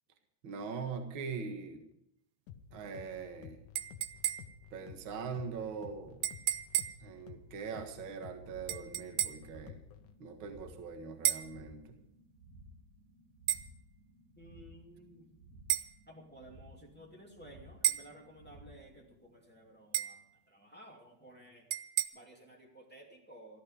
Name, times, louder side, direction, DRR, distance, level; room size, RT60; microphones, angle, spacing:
voice 1, 0.4-1.8 2.7-3.6 4.7-6.2 7.0-9.8 10.2-12.0, right 5 dB, 65° right, 5 dB, 1.2 m, -42 dB
sound 1, 2.5-10.1, left 8 dB, 70° left, 2.2 m, -53 dB
sound 2, 3.8-4.7 6.2-7.1 8.7-9.5 11.3-11.6 13.5-13.7 15.7-15.9 17.8-18.2 19.9-20.3 21.7-22.1, right 14 dB, 85° right, 2.2 m, -33 dB
sound 3, 8.2-20.0, equal, 25° right, 6.9 m, -57 dB
voice 2, 14.3-15.3 16.1-21.6 22.1-23.6, right 1 dB, 5° left, -1 dB, 0.9 m, -55 dB
15.0 x 14.0 x 5.0 m, 0.75 s
omnidirectional pair, 5.1 m